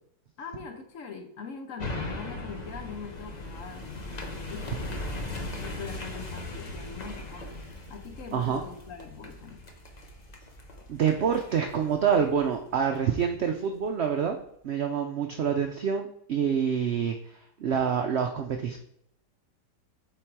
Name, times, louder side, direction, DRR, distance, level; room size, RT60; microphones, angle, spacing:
voice 1, 0.4-5.0 5.6-9.7, left 5 dB, 60° left, 5 dB, 1.0 m, -42 dB
sound 1, 1.8-13.2 13.7-13.8, left 2 dB, 35° left, 0.7 m, -39 dB
voice 2, 10.9-14.4 14.6-18.8, right 7 dB, 90° right, 4 dB, 0.5 m, -27 dB
7.8 x 4.0 x 4.6 m, 0.74 s
omnidirectional pair, 1.8 m